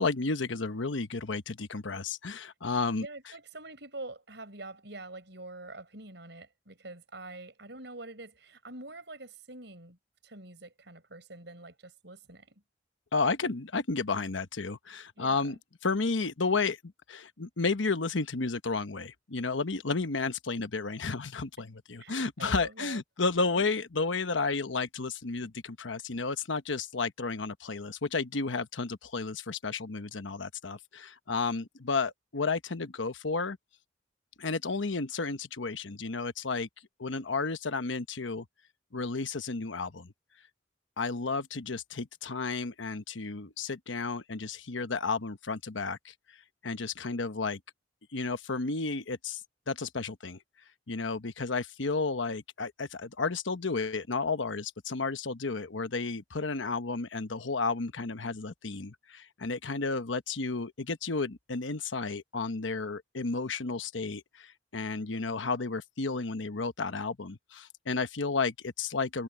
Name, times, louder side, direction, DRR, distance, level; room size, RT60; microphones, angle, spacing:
voice 1, 0.0-3.1 13.1-33.6 34.4-36.7 37.0-38.5 38.9-40.1 41.0-46.1 46.6-47.6 48.1-49.4 49.7-50.4 50.9-69.2, left 4 dB, 90° left, 1.1 m, -32 dB
voice 2, 3.0-10.0 10.2-12.6 15.2-15.6 22.0-23.0, right 2 dB, 65° right, 6.7 m, -45 dB
head